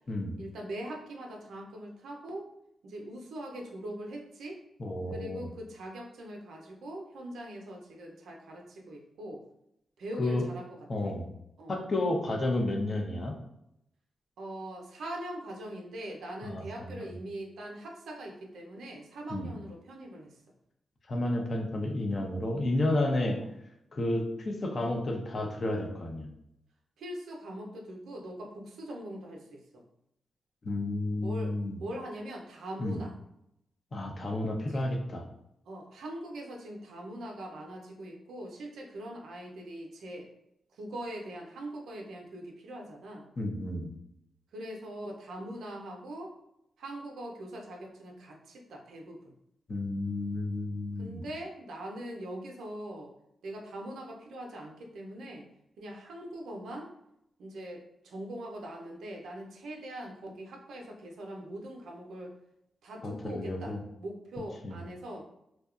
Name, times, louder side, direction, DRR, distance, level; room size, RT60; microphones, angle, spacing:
voice 1, 0.4-2.5 2.8-4.6 5.1-9.4 10.0-11.1 11.6-11.8 14.4-20.4 23.4-23.5 27.0-29.8 31.2-33.1 34.7-34.9 35.7-40.3 40.7-43.3 44.5-46.3 46.8-49.3 51.0-53.1 53.4-55.5 55.8-56.9 57.4-62.3 62.8-65.3, right 1 dB, 75° right, 0 dB, 0.4 m, -42 dB
voice 2, 4.8-5.5 10.2-10.4 10.9-11.3 11.7-13.4 16.4-17.1 19.3-19.5 21.1-23.4 23.9-26.3 30.6-31.8 32.8-33.0 33.9-35.2 43.4-43.9 49.7-51.2 63.0-63.8 64.6-64.8, left 1 dB, 50° left, 2 dB, 0.6 m, -31 dB
2.7 x 2.1 x 2.4 m, 0.80 s
supercardioid pair, 40°, 0 cm